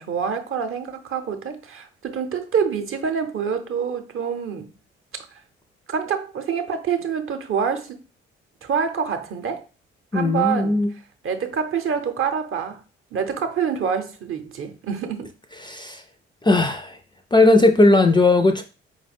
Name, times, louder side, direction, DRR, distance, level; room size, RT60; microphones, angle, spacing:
voice 1, 0.0-4.7 5.9-8.0 8.6-9.6 10.1-10.8 11.2-12.8 13.1-15.3, right 7 dB, 40° right, 0.7 m, -26 dB
voice 2, 10.1-10.9 15.6-16.0 16.4-17.0 17.3-18.6, left 2 dB, 15° left, 0.4 m, -17 dB
4.7 x 2.2 x 3.4 m
figure-of-eight pair, 40°, 31 cm